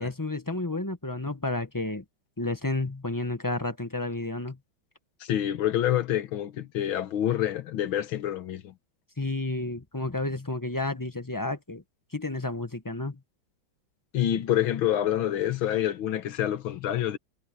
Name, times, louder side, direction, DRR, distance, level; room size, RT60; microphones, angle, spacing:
voice 1, 0.0-2.0 2.4-4.6 9.2-11.8 12.1-13.2, left 2 dB, 15° left, 0.8 m, -31 dB
voice 2, 5.2-8.7 14.1-17.2, left 11 dB, 90° left, 1.9 m, -27 dB
omnidirectional pair, 2.1 m